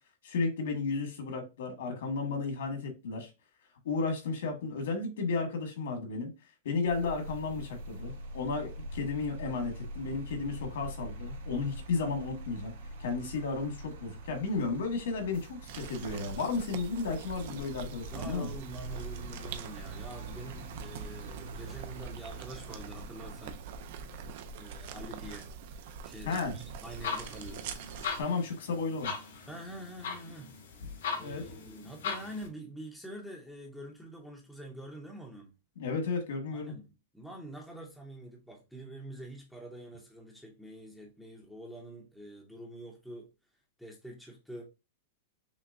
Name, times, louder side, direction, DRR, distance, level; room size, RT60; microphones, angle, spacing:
voice 1, 0.2-3.3 3.8-6.3 6.6-12.7 13.0-18.5 26.2-26.5 28.2-29.5 31.2-31.4 35.8-36.7, left 4 dB, 70° left, 1.7 m, -33 dB
sound 1, 6.9-25.4, right 1 dB, 80° right, 1.2 m, -44 dB
sound 2, 15.7-28.2, right 6 dB, 40° right, 0.4 m, -44 dB
voice 2, 18.1-23.6 24.6-25.5 26.0-27.7 29.5-30.5 31.1-35.5 36.5-43.3 43.8-44.6, right 1 dB, ahead, 0.6 m, -46 dB
sound 3, 26.9-32.5, left 6 dB, 85° left, 2.4 m, -39 dB
5.8 x 2.1 x 2.5 m
supercardioid pair, 180°, 0 cm